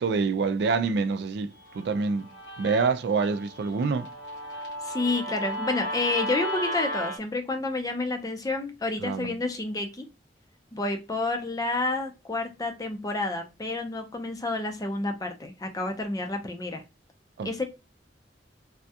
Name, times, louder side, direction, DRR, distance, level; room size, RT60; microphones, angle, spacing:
voice 1, 0.0-2.3 2.6-4.1 9.0-9.3 17.4-17.6, right 4 dB, 65° right, 0.3 m, -26 dB
Guitar, 1.7-7.2, equal, 80° left, 1.0 m, -35 dB
voice 2, 4.8-10.1 10.7-16.8 17.4-17.6, left 2 dB, 20° left, 0.5 m, -29 dB
3.4 x 2.3 x 2.7 m
head